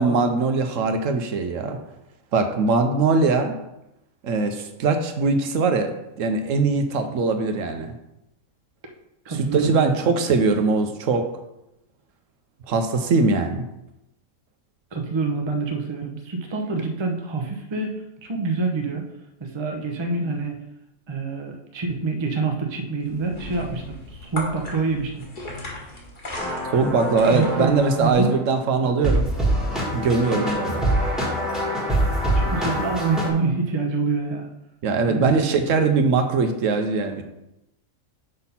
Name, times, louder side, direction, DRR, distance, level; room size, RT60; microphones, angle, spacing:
voice 1, 0.0-1.8 2.3-3.6 4.2-7.9 9.3-11.3 12.7-13.7 26.7-29.3 29.9-30.9 34.8-37.2, right 4 dB, 70° right, 6 dB, 1.0 m, -21 dB
voice 2, 9.2-10.1 14.9-19.0 19.4-20.6 21.1-25.2 27.3-28.4 28.8-28.9 32.3-34.5 35.1-35.4, right 4 dB, 25° right, 3 dB, 0.6 m, -26 dB
sound 1, 23.0-28.1, left 1 dB, 35° left, 1.4 m, -37 dB
sound 2, 26.3-28.4 29.0-33.3, right 1 dB, ahead, 1.3 m, -25 dB
5.2 x 4.1 x 5.6 m, 0.87 s
omnidirectional pair, 1.5 m